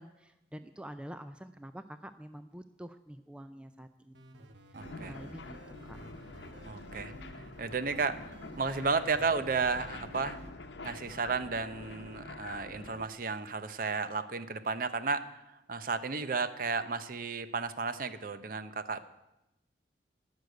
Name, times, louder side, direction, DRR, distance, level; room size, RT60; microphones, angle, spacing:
voice 1, 0.0-4.5 5.0-5.6 5.8-6.0, equal, 5° right, 10 dB, 0.3 m, -47 dB
sound 1, 4.1-10.5, right 1 dB, 80° right, 1.1 m, -51 dB
voice 2, 4.7-5.2 6.6-8.2 8.6-10.4 10.8-19.0, right 4 dB, 50° right, 12 dB, 0.6 m, -33 dB
sound 2, 4.8-13.1, left 3 dB, 75° left, 0.9 m, -47 dB
11.5 x 6.4 x 9.5 m, 0.94 s
head